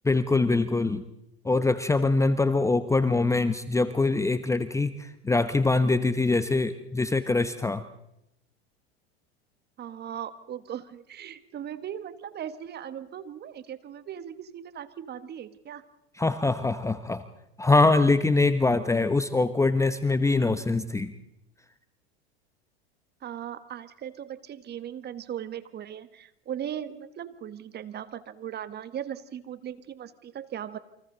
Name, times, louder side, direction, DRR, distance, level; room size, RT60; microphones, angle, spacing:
voice 1, 0.0-1.0 1.4-7.8 16.2-17.2 17.6-21.1, left 3 dB, 10° left, 12 dB, 0.8 m, -23 dB
voice 2, 9.8-15.8 23.2-30.8, right 9 dB, 30° right, 13 dB, 1.4 m, -38 dB
28.5 x 25.5 x 3.9 m, 0.83 s
hypercardioid pair, 100°, 32 cm